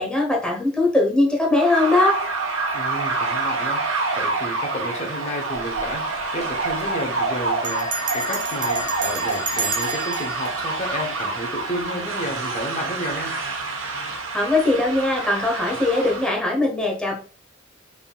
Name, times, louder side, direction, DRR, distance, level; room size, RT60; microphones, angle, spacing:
voice 1, 0.0-2.2 14.3-17.1, left 2 dB, 5° left, -2 dB, 0.9 m, -20 dB
sound 1, 1.5-16.3, right 3 dB, 70° right, 1.0 m, -27 dB
voice 2, 2.7-13.3 15.7-15.8, equal, 35° left, 2 dB, 0.8 m, -31 dB
Bell, 5.7-5.9 6.2-6.3 6.5-6.9 7.6-11.7, right 3 dB, 40° right, 0.8 m, -31 dB
4.8 x 3.5 x 2.3 m, 0.40 s
head